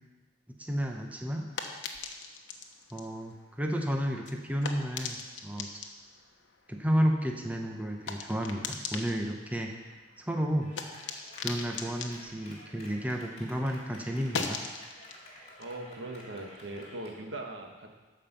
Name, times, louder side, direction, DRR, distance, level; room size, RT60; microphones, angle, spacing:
voice 1, 0.6-1.5 2.9-5.7 6.7-9.7 10.3-10.7 11.4-14.6, equal, 10° right, 2 dB, 0.8 m, -31 dB
sound 1, 0.7-13.5 13.8-17.0, left 5 dB, 75° left, 1.0 m, -42 dB
Clapping, 10.6-17.2, left 1 dB, 35° left, 2.9 m, -52 dB
voice 2, 15.6-17.9, right 2 dB, 80° right, 2 dB, 1.5 m, -40 dB
12.5 x 5.3 x 6.8 m, 1.2 s
head